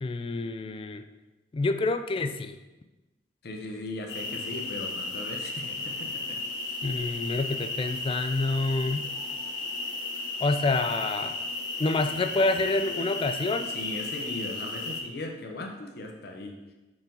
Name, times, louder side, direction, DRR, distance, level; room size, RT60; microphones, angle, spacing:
voice 1, 0.0-1.0 1.5-2.6 6.8-9.1 10.4-11.3 11.8-13.7, left 2 dB, 30° left, 8 dB, 0.3 m, -27 dB
voice 2, 3.4-6.8 13.7-16.7, left 2 dB, 65° left, 2 dB, 0.7 m, -38 dB
sound 1, 4.1-15.0, left 3 dB, 85° left, 1.0 m, -34 dB
5.2 x 4.9 x 3.8 m, 1.1 s
head